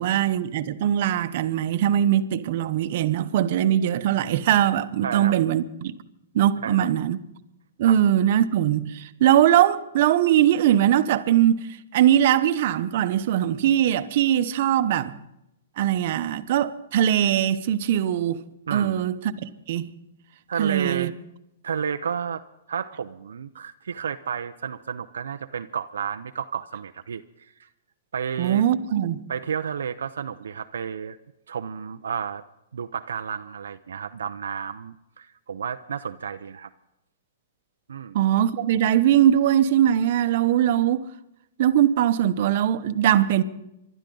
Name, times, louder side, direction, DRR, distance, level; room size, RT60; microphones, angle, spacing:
voice 1, 0.0-5.9 6.3-7.2 7.8-11.6 11.9-15.1 15.8-18.4 18.7-19.9 20.6-21.1 28.4-29.2 38.1-41.0 41.6-43.4, right 11 dB, 55° right, 0.9 m, -21 dB
voice 2, 5.0-5.4 6.6-6.9 7.8-8.0 18.7-19.0 20.5-21.1 21.6-22.4 22.7-27.2 27.6-27.7 28.1-28.6 29.3-31.2 31.5-32.4 32.7-36.7 37.9-38.2, right 7 dB, 85° right, 0.6 m, -31 dB
27.0 x 12.0 x 3.9 m
hypercardioid pair, 140°, 0 cm